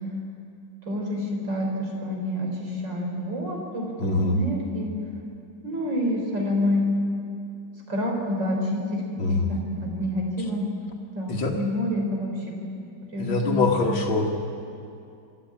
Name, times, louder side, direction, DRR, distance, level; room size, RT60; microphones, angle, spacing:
voice 1, 0.9-5.0 5.6-6.9 7.9-9.0 9.3-10.6 11.1-12.3 13.1-13.7, left 1 dB, 60° right, 0 dB, 4.6 m, -27 dB
voice 2, 4.0-4.4 9.2-9.5 11.3-11.5 13.2-14.3, left 3 dB, 75° left, -4 dB, 2.3 m, -24 dB
28.0 x 12.0 x 8.7 m, 2.6 s
omnidirectional pair, 2.2 m